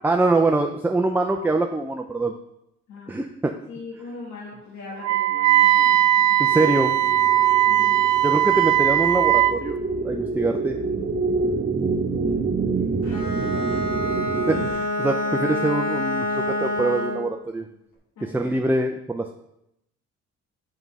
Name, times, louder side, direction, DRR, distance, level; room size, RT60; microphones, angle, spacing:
voice 1, 0.0-2.3 3.1-3.5 6.4-7.0 8.2-10.8 14.5-17.7 18.2-19.3, right 2 dB, 5° right, 3 dB, 0.5 m, -24 dB
voice 2, 3.7-6.3 7.7-7.9 12.2-13.1 13.3-13.8 18.2-18.6, left 3 dB, 70° left, -5 dB, 2.0 m, -40 dB
Wind instrument woodwind instrument, 5.0-9.6, right 13 dB, 70° right, 0.5 m, -19 dB
sound 1, 6.5-14.7, right 4 dB, 30° right, 1.0 m, -27 dB
Bowed string instrument, 13.0-17.3, left 1 dB, 85° left, 2.4 m, -27 dB
5.9 x 5.5 x 4.7 m, 0.82 s
cardioid pair, 90°, 30 cm